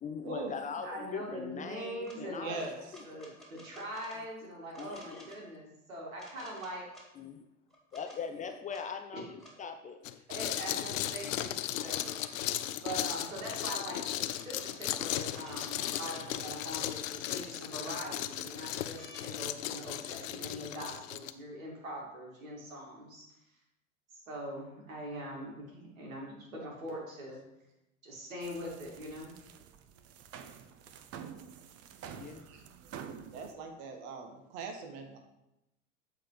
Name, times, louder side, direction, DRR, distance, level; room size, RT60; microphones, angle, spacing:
voice 1, 0.0-3.0 4.8-5.3 7.2-7.5 7.9-10.0 20.3-20.7 32.1-32.5, left 6 dB, 20° left, 7 dB, 0.4 m, -41 dB
voice 2, 0.8-2.7 3.0-6.9 9.6-9.7 10.3-12.4 12.8-23.2 24.1-27.4 28.0-29.3, right 1 dB, 80° right, -2 dB, 2.7 m, -42 dB
sound 1, 2.0-2.2 2.6-4.2 4.7-5.4 6.2-7.1 7.7-8.2 8.7-8.8 9.4-9.6 10.6-10.7 11.6-12.5 13.0-13.7 14.3-16.3 17.3-17.4 17.7-18.3 19.0-19.3 20.8-20.9, equal, ahead, 2.2 m, -53 dB
voice 3, 2.4-2.9 32.5-32.6 33.3-35.2, right 4 dB, 55° right, 4 dB, 1.4 m, -41 dB
sound 2, 10.0-21.3, left 12 dB, 75° left, 0.6 m, -36 dB
sound 3, 28.4-33.5, right 8 dB, 40° right, 0.7 m, -48 dB
7.9 x 4.2 x 5.1 m, 0.90 s
hypercardioid pair, 90°, 40 cm